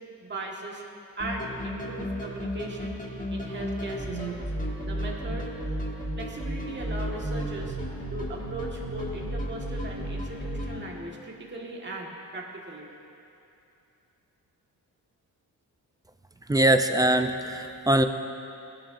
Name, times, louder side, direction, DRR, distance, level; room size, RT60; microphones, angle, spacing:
voice 1, 0.2-0.8 1.2-3.0 3.3-4.5 4.8-5.5 6.2-7.8 8.1-12.9, right 2 dB, 30° right, -1 dB, 1.6 m, -38 dB
sound 1, 1.2-10.8, equal, 20° left, 1.9 m, -33 dB
voice 2, 16.5-18.1, right 1 dB, 10° right, 8 dB, 0.4 m, -22 dB
19.5 x 11.5 x 2.6 m, 2.7 s
wide cardioid pair, 115°, 37 cm